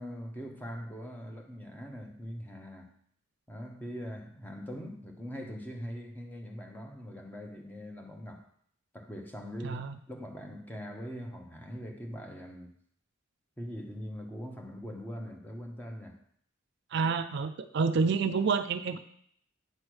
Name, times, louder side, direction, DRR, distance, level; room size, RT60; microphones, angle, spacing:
voice 1, 0.0-3.0 3.5-8.5 8.9-12.7 13.6-16.2, equal, 10° left, 0.8 m, -42 dB
voice 2, 9.6-9.9 16.9-19.0, right 5 dB, 55° right, 0.4 m, -28 dB
9.0 x 3.2 x 6.2 m
head